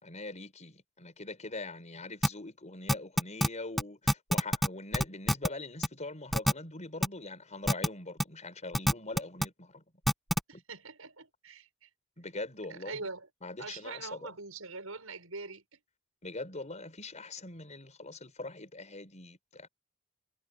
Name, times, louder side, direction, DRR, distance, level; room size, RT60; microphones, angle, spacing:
voice 1, 0.0-9.8 10.5-10.6 12.2-13.1 13.4-14.3 16.2-19.7, left 2 dB, 35° left, 5.5 m, -42 dB
sound 1, 2.2-2.3 2.9-3.5 3.8-3.9 4.1-4.7 4.9-5.5 5.8-5.9 6.3-6.5 7.0-7.1 7.7-7.9 8.2-8.3 8.7-9.4 10.1-10.4, equal, ahead, 1.2 m, -25 dB
voice 2, 10.5-11.9 12.7-13.3 13.6-15.8, right 3 dB, 90° right, 6.4 m, -43 dB
head